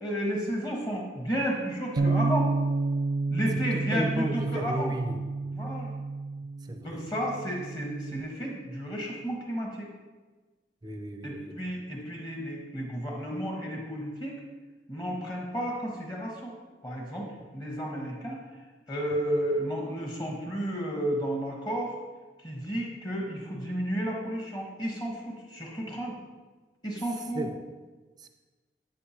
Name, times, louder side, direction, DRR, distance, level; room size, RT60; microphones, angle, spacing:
voice 1, 0.0-2.5 3.3-4.9 5.5-5.9 6.8-9.9 11.2-14.4 14.9-16.6 16.8-17.3 17.5-18.5 18.9-22.0 22.4-26.2 26.8-27.5, equal, 25° left, -1 dB, 1.2 m, -32 dB
Bass guitar, 2.0-8.2, right 3 dB, 80° right, 0.5 m, -30 dB
voice 2, 3.7-5.3 6.7-7.1 10.8-11.6 19.1-19.2 27.3-27.6 28.2-28.3, right 1 dB, 25° right, 6 dB, 0.5 m, -34 dB
8.2 x 6.5 x 2.8 m, 1.3 s
head